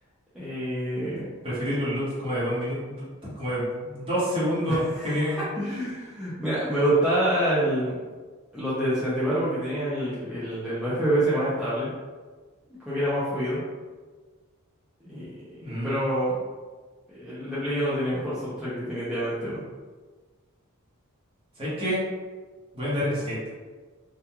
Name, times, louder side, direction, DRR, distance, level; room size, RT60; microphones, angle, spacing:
voice 1, 0.3-1.2 4.7-8.0 8.5-11.9 12.9-13.6 15.0-15.3 15.7-16.4 17.1-19.6, right 1 dB, 5° right, -12 dB, 0.5 m, -27 dB
voice 2, 1.4-5.4 15.6-16.0 21.6-22.0 22.7-23.4, equal, 25° right, -9 dB, 1.1 m, -28 dB
2.8 x 2.3 x 2.3 m, 1.4 s
head